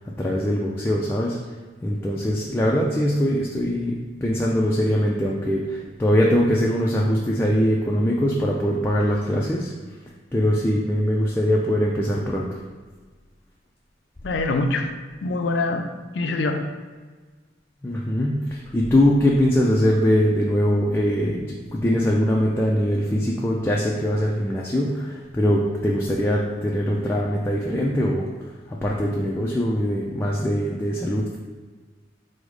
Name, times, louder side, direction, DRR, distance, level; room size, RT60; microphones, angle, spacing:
voice 1, 0.2-1.4 1.8-9.7 10.3-12.6 17.8-28.3 28.7-31.4, equal, 15° left, -3 dB, 0.3 m, -22 dB
voice 2, 14.2-14.8 15.2-15.8 16.2-16.6, left 3 dB, 75° left, 5 dB, 0.4 m, -23 dB
5.0 x 2.1 x 4.7 m, 1.4 s
head